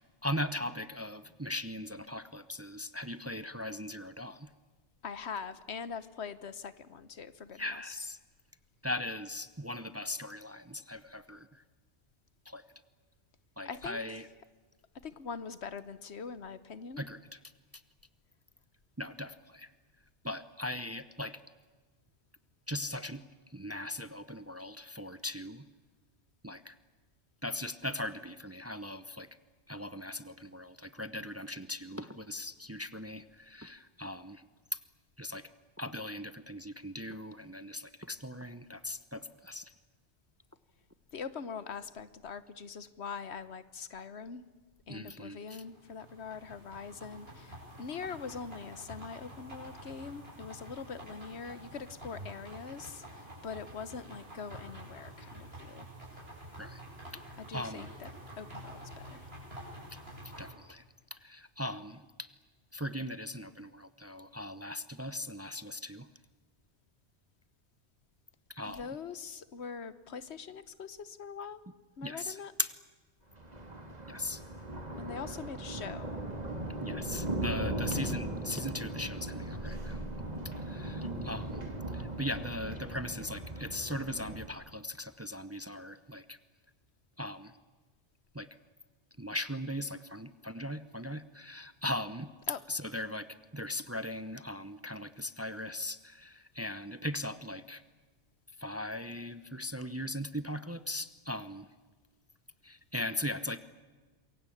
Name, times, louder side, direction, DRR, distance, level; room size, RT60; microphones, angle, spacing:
voice 1, 0.2-4.5 7.5-8.2 8.8-11.6 12.5-12.6 13.6-14.3 17.0-17.4 19.0-19.7 20.2-21.4 22.7-23.2 23.5-25.6 26.4-26.7 27.4-29.3 29.7-34.4 34.7-34.8 35.2-35.5 35.8-39.7 44.9-45.6 56.6-56.8 57.1-57.2 57.5-57.9 60.4-60.8 61.1-62.3 62.7-66.1 68.5-68.9 72.0-72.7 74.1-74.4 76.8-80.1 80.7-86.4 87.2-87.5 88.3-88.5 89.2-92.3 92.7-93.3 93.5-97.8 98.6-101.7 102.6-103.6, left 1 dB, 15° right, 13 dB, 0.8 m, -39 dB
voice 2, 5.0-8.0 13.7-14.0 15.0-17.0 41.1-44.4 44.9-55.9 57.4-58.1 58.4-59.3 68.6-71.6 72.0-72.5 74.9-76.1 92.5-92.6, left 6 dB, 75° left, 14 dB, 1.3 m, -43 dB
sound 1, 45.5-60.5, right 1 dB, 60° right, 8.0 m, -48 dB
Thunder, 73.3-84.5, right 1 dB, 35° right, 3.0 m, -38 dB
27.0 x 22.5 x 8.6 m, 1.3 s
omnidirectional pair, 1.1 m